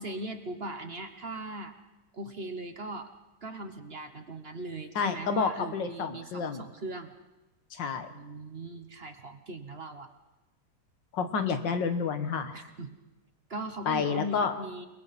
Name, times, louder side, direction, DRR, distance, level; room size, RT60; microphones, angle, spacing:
voice 1, 0.0-1.7 2.1-3.1 3.4-7.1 8.1-10.1 12.5-13.0 13.5-14.9, right 1 dB, 40° right, 7 dB, 1.1 m, -39 dB
voice 2, 5.0-6.6 7.7-8.1 11.1-12.5 13.9-14.5, left 5 dB, 90° left, 8 dB, 2.1 m, -29 dB
29.0 x 21.0 x 4.2 m, 1.1 s
omnidirectional pair, 1.9 m